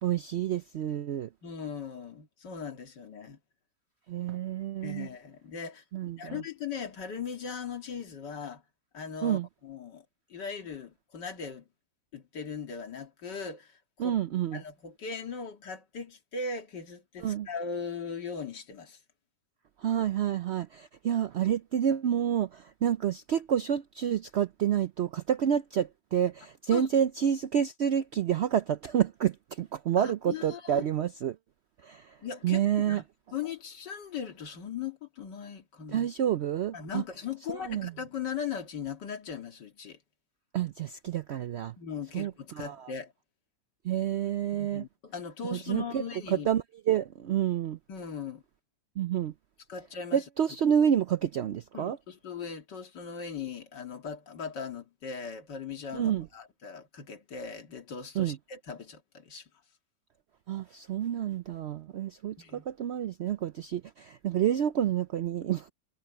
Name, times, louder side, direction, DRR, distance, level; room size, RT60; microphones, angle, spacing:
voice 1, 0.0-1.3 4.1-5.1 5.9-6.4 9.2-9.5 14.0-14.6 17.2-17.5 19.8-31.4 31.8-32.2 32.4-33.0 35.9-37.0 37.5-37.9 40.5-41.7 42.1-42.9 43.8-44.8 45.5-46.0 46.3-47.8 49.0-49.3 50.1-52.0 55.9-56.3 58.2-58.4 60.5-65.7, right 9 dB, 85° right, 0.5 m, -29 dB
voice 2, 1.4-3.4 4.8-5.8 6.2-8.6 8.9-10.0 10.3-11.6 12.1-14.2 14.5-19.0 26.7-26.9 30.0-30.9 32.2-33.0 33.3-36.1 36.7-40.0 41.8-43.1 44.5-46.5 47.9-48.4 49.7-50.2 51.7-59.5 62.4-62.7, left 6 dB, 85° left, 2.6 m, -39 dB
omnidirectional pair, 1.8 m